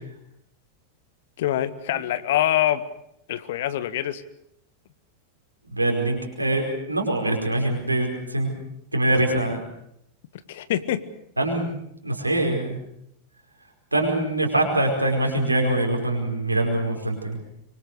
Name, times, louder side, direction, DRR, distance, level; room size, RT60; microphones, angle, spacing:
voice 1, 1.4-2.8 3.3-4.2 10.5-11.0, left 12 dB, 55° left, 14 dB, 1.6 m, -24 dB
voice 2, 5.7-8.6 8.9-9.6 11.4-11.7 12.0-12.8 13.9-17.4, right 1 dB, 85° right, 2 dB, 4.9 m, -23 dB
25.5 x 24.0 x 6.5 m, 0.77 s
figure-of-eight pair, 90°, 0 cm